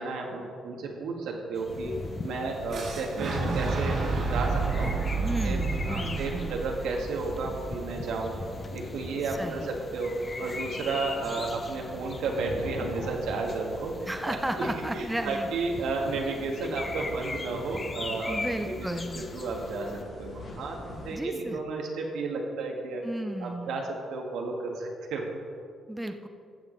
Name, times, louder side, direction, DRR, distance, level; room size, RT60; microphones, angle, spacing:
voice 1, 0.0-5.1 5.4-5.6 5.8-8.4 8.7-23.0 23.4-25.3, right 3 dB, 85° right, 0 dB, 1.6 m, -33 dB
sound 1, 1.6-20.0, left 3 dB, 30° left, 0.7 m, -41 dB
sound 2, 1.7-21.2, left 2 dB, 55° left, 1.5 m, -43 dB
Boom, 2.7-8.6, right 3 dB, 60° right, 2.0 m, -30 dB
voice 2, 5.2-6.6 9.4-9.7 14.1-15.5 18.3-19.3 21.1-21.6 23.0-23.8 25.9-26.3, right 1 dB, 10° right, 6 dB, 0.6 m, -34 dB
14.0 x 7.1 x 3.9 m, 2.3 s
cardioid pair, 90°, 0 cm